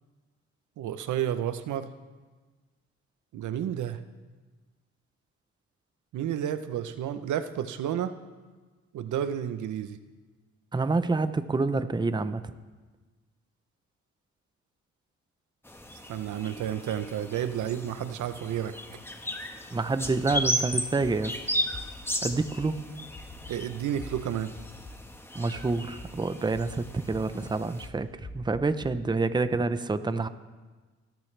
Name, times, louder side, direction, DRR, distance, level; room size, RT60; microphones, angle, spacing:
voice 1, 0.8-1.9 3.3-4.0 6.1-8.1 8.9-10.0 16.1-18.7 23.5-24.5, right 10 dB, 75° right, 11 dB, 0.9 m, -31 dB
voice 2, 10.7-12.4 19.7-21.4 22.2-22.8 25.3-28.1 28.3-30.3, right 3 dB, 15° right, 12 dB, 0.7 m, -27 dB
sound 1, 15.6-27.9, equal, 10° left, 1.4 m, -36 dB
sound 2, 20.0-20.4 21.0-21.3 21.7-21.8 22.3-22.7 23.1-23.5 24.0-24.1 24.5-24.9 25.5-26.1 26.5-27.2 27.8-28.9, left 3 dB, 35° left, 2.8 m, -43 dB
29.0 x 13.5 x 3.4 m, 1.3 s
cardioid pair, 90°, 30 cm